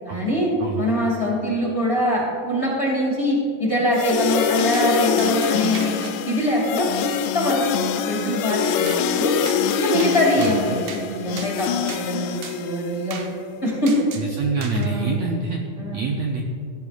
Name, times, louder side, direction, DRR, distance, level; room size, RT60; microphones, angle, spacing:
voice 1, 0.0-6.0 6.2-9.4 9.8-13.2 13.6-13.9 14.7-15.1 15.8-16.0, equal, 20° left, -5 dB, 2.2 m, -23 dB
sound 1, 3.9-13.1, left 7 dB, 85° left, 2.3 m, -25 dB
sound 2, 4.7-4.9 5.2-6.1 8.9-9.0 9.5-9.6 10.0-10.2 10.4-11.0 11.4-11.5 11.9-12.0 12.4-12.6 13.1-13.3 13.9-14.3 14.6-14.9, right 6 dB, 70° right, 2.1 m, -36 dB
voice 2, 14.2-15.6 15.9-16.4, right 3 dB, 85° right, 1 dB, 1.5 m, -25 dB
16.0 x 10.5 x 2.5 m, 2.4 s
omnidirectional pair, 4.0 m